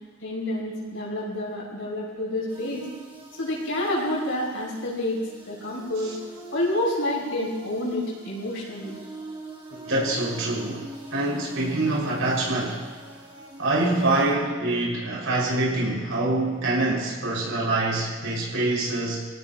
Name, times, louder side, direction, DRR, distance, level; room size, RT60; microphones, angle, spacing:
voice 1, 0.2-2.8 3.4-5.2 5.5-6.1 6.5-9.0, left 1 dB, 75° left, -5 dB, 6.6 m, -28 dB
sound 1, 2.5-14.3, right 1 dB, 25° right, 4.3 m, -43 dB
voice 2, 9.7-12.9 13.6-19.3, right 2 dB, 80° right, -5 dB, 6.3 m, -25 dB
26.5 x 17.0 x 3.1 m, 1.4 s
head